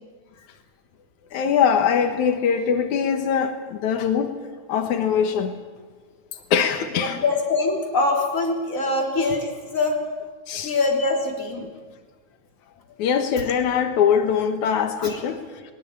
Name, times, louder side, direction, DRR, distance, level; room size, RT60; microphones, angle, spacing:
voice 1, 1.3-4.3 4.7-5.5 6.5-7.2 10.5-10.7 11.6-11.7 13.0-15.4, left 7 dB, 85° left, 7 dB, 2.7 m, -22 dB
voice 2, 7.0-10.0 10.6-11.6 15.0-15.2, left 3 dB, 25° left, 0 dB, 3.9 m, -23 dB
21.5 x 19.5 x 8.7 m, 1.4 s
omnidirectional pair, 3.3 m